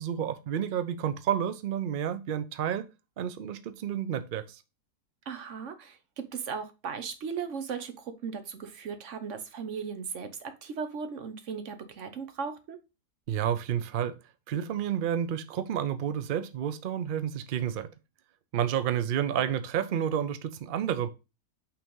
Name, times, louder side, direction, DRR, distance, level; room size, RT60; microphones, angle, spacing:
voice 1, 0.0-2.9 3.2-4.6 13.3-14.2 14.5-17.9 18.5-21.1, right 9 dB, 80° right, 0.4 m, -30 dB
voice 2, 5.3-12.8, right 6 dB, 55° right, 1.1 m, -37 dB
5.8 x 3.4 x 5.3 m
omnidirectional pair, 1.7 m